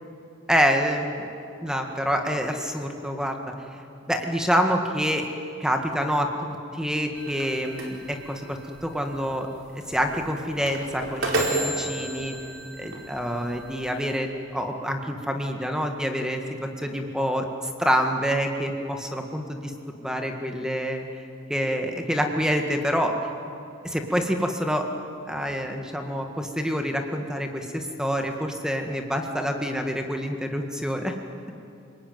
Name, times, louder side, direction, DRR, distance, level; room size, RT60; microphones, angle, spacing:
voice 1, 0.5-1.3 1.6-3.4 4.1-5.3 5.6-9.5 9.7-12.3 12.8-17.5 17.8-19.7 20.0-21.0 21.5-23.1 23.8-24.9 25.3-31.1, equal, 5° right, 4 dB, 1.8 m, -27 dB
sound 1, 7.2-14.2, right 1 dB, 65° right, 4.6 m, -33 dB
28.5 x 20.0 x 9.4 m, 2.7 s
head